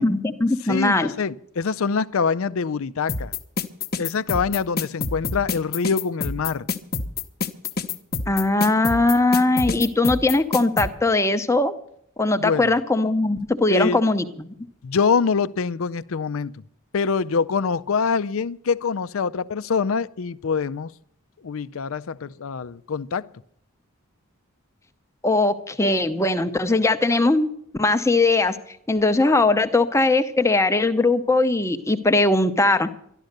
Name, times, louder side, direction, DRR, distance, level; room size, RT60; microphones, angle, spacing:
voice 1, 0.0-1.1 8.3-11.7 12.2-14.5 25.2-27.5 27.8-28.6 28.9-32.9, left 2 dB, 15° left, 0.7 m, -20 dB
voice 2, 0.7-3.3 4.0-6.7 12.4-12.7 13.7-14.0 14.8-16.5 16.9-20.9 21.4-23.3, left 5 dB, 70° left, 0.5 m, -24 dB
sound 1, 3.1-10.9, left 4 dB, 45° left, 0.9 m, -26 dB
13.0 x 11.5 x 6.6 m
head